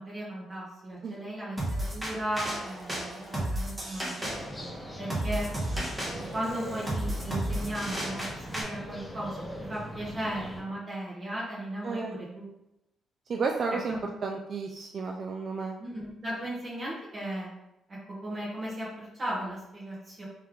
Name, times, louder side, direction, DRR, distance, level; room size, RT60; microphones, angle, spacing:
voice 1, 0.0-4.3 5.0-5.5 6.0-12.5 13.9-14.0 15.8-17.5 17.9-20.3, right 1 dB, 35° right, -7 dB, 1.4 m, -36 dB
sound 1, 1.6-8.6, right 1 dB, 15° right, 1.1 m, -33 dB
sound 2, 4.2-10.6, equal, 15° left, 0.8 m, -41 dB
voice 2, 11.8-12.2 13.3-15.8, right 4 dB, 50° right, 2 dB, 0.3 m, -32 dB
3.3 x 3.2 x 3.6 m, 0.87 s
cardioid pair, 90°, 0 cm